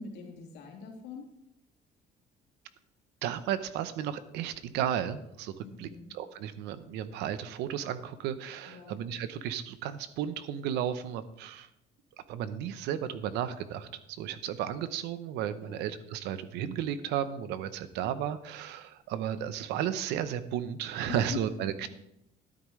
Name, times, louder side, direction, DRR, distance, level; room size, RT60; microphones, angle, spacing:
voice 1, 0.0-1.3 5.6-6.1 8.7-9.0 15.6-15.9 21.1-21.4 21.8-21.9, left 6 dB, 85° left, -1 dB, 3.0 m, -43 dB
voice 2, 3.2-5.5 5.8-5.9 6.1-11.7 12.3-21.9, right 10 dB, 90° right, 13 dB, 0.8 m, -34 dB
12.5 x 10.5 x 3.2 m, 0.80 s
cardioid pair, 110°, 17 cm